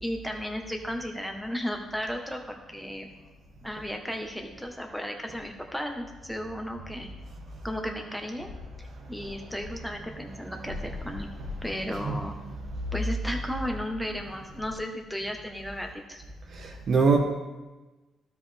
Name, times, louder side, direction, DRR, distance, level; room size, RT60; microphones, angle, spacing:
voice 1, 0.0-3.1 3.6-7.1 7.6-8.5 8.8-11.3 11.6-12.5 12.9-16.2, equal, ahead, 3 dB, 1.2 m, -34 dB
voice 2, 10.7-12.2 12.4-12.6 16.5-17.2, right 4 dB, 55° right, 3 dB, 1.3 m, -28 dB
12.5 x 5.2 x 3.5 m, 1.2 s
cardioid pair, 90°, 0 cm